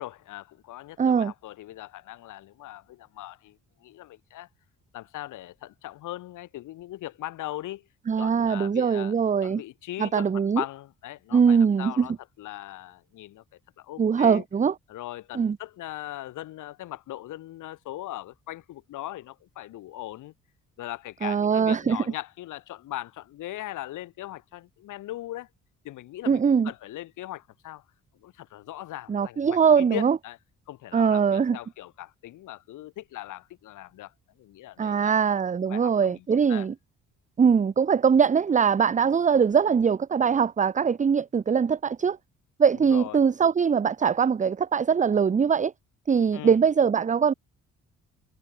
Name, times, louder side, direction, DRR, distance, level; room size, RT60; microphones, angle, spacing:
voice 1, 0.0-4.5 4.9-7.9 8.2-9.1 9.4-13.4 13.8-14.4 14.9-20.3 20.8-25.5 25.8-27.8 28.2-30.4 30.7-34.1 34.4-35.2 35.7-36.7 42.9-43.2 46.3-46.6, left 15 dB, 85° left, 3.8 m, -39 dB
voice 2, 1.0-1.3 8.1-9.6 10.0-10.6 11.3-12.1 14.0-14.7 15.3-15.6 21.2-22.0 26.3-26.7 29.1-30.2 30.9-31.6 34.8-36.7 37.4-42.2 42.6-45.7 46.1-47.3, right 6 dB, 25° right, 0.6 m, -22 dB
cardioid pair, 90°, 30 cm